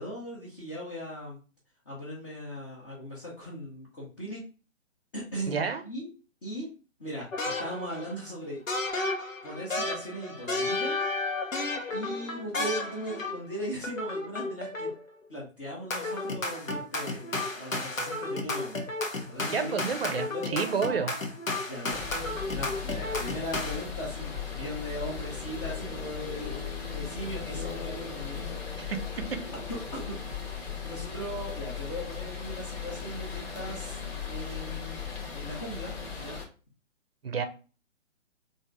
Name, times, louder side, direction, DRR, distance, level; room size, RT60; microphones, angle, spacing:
voice 1, 0.0-1.4 1.9-4.5 5.1-6.1 6.4-6.7 7.0-7.3 7.6-8.6 9.4-11.0 11.4-11.6 11.9-14.9 15.3-18.8 19.3-19.8 20.2-20.7 21.7-28.6 29.7-30.5 30.8-34.0 34.3-35.0 35.3-35.9 36.2-36.4, equal, 20° left, -6 dB, 0.7 m, -38 dB
voice 2, 5.5-5.8 19.5-21.1 28.8-29.0 29.3-29.4 37.2-37.5, right 5 dB, 50° right, 8 dB, 0.6 m, -30 dB
sound 1, 7.3-8.1 8.7-13.5 13.8-15.1 15.9-23.8, left 2 dB, 80° left, 1.0 m, -33 dB
sound 2, 21.9-36.5, left 6 dB, 50° left, 1.2 m, -37 dB
3.5 x 2.6 x 3.2 m, 0.35 s
figure-of-eight pair, 135°, 39 cm